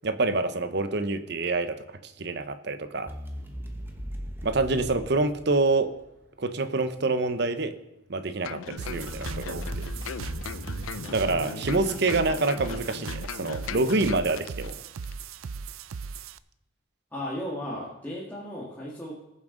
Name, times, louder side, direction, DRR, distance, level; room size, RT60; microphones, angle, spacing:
voice 1, 0.0-3.1 4.4-5.9 6.4-7.7 8.1-9.9 11.1-14.7, right 3 dB, 55° right, 10 dB, 0.9 m, -27 dB
sound 1, 3.1-6.1 9.1-12.5, equal, 10° right, 1.1 m, -39 dB
sound 2, 8.4-14.7 15.0-15.2, left 6 dB, 85° left, 0.4 m, -39 dB
sound 3, 8.8-16.4, right 5 dB, 90° right, 0.5 m, -38 dB
voice 2, 10.9-11.8 17.1-19.2, left 1 dB, 10° left, -7 dB, 1.8 m, -36 dB
20.5 x 7.3 x 3.9 m, 0.91 s
head